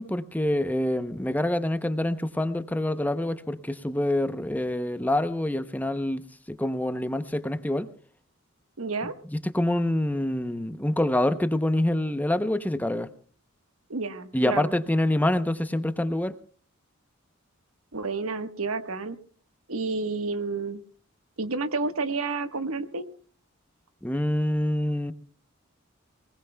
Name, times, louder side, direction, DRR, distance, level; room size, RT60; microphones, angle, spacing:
voice 1, 0.0-7.9 9.3-13.1 14.3-16.3 24.0-25.1, left 1 dB, 10° left, 12 dB, 0.7 m, -26 dB
voice 2, 8.8-9.1 13.9-14.7 17.9-19.2 19.7-20.8 21.4-23.1, right 3 dB, 90° right, 9 dB, 1.3 m, -30 dB
26.5 x 19.5 x 2.2 m, 0.42 s
head